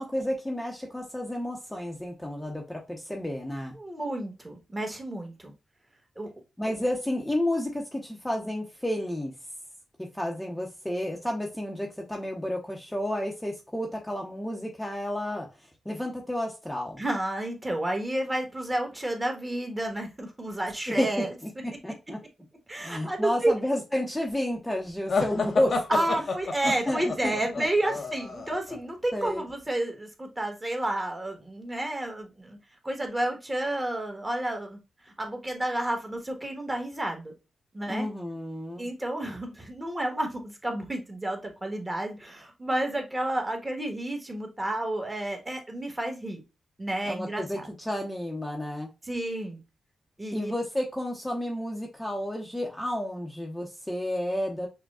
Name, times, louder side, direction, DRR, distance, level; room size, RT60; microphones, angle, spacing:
voice 1, 0.0-3.8 6.6-9.3 10.0-15.5 15.8-17.0 20.9-21.1 21.4-22.2 22.8-26.1 26.6-27.7 29.1-29.4 37.9-38.9 47.1-48.9 50.3-54.7, left 1 dB, 10° left, 0.8 m, -31 dB
voice 2, 3.7-5.5 6.2-6.3 6.7-6.8 17.0-21.3 22.7-23.5 25.9-32.6 32.8-34.8 35.2-37.3 37.7-38.1 38.8-46.4 46.8-47.7 49.0-49.6 50.2-50.5, right 1 dB, 20° right, 1.3 m, -31 dB
sound 1, 25.1-28.8, left 4 dB, 60° left, 0.8 m, -29 dB
5.9 x 2.2 x 2.3 m
cardioid pair, 70°, 0 cm